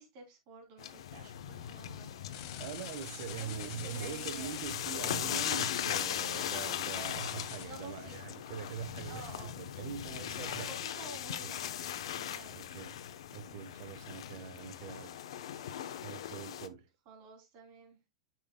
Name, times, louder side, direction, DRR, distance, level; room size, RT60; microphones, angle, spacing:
voice 1, 0.0-2.2 3.1-4.7 7.6-8.4 9.0-9.6 10.3-12.6 13.5-13.7 17.0-18.0, right 3 dB, 40° right, 3.0 m, -51 dB
sound 1, 0.8-16.7, left 10 dB, 75° left, 0.8 m, -39 dB
sound 2, 2.3-7.7, left 11 dB, 45° left, 1.2 m, -46 dB
voice 2, 2.6-9.2 9.6-10.7 11.4-11.5 12.6-12.9 13.3-15.2 16.0-16.9, right 9 dB, 55° right, 1.1 m, -43 dB
8.7 x 6.1 x 2.2 m
supercardioid pair, 160°, 3 cm